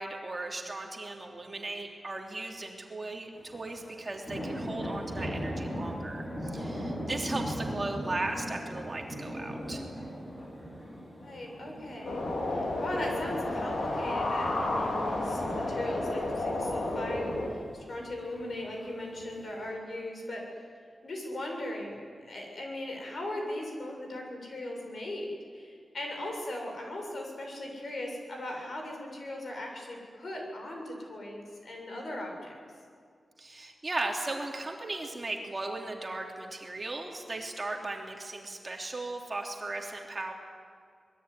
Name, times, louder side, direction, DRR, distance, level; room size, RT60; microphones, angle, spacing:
voice 1, 0.0-9.8 33.4-40.3, right 2 dB, 30° right, 1 dB, 3.2 m, -37 dB
sound 1, 3.3-19.7, equal, 25° left, 6.4 m, -40 dB
voice 2, 11.2-12.2 12.5-20.5 21.0-32.6, left 1 dB, 55° left, 1 dB, 7.2 m, -38 dB
sound 2, 12.0-17.5, left 2 dB, 80° left, 5.2 m, -31 dB
26.0 x 21.5 x 9.9 m, 2.2 s
wide cardioid pair, 140°, 0 cm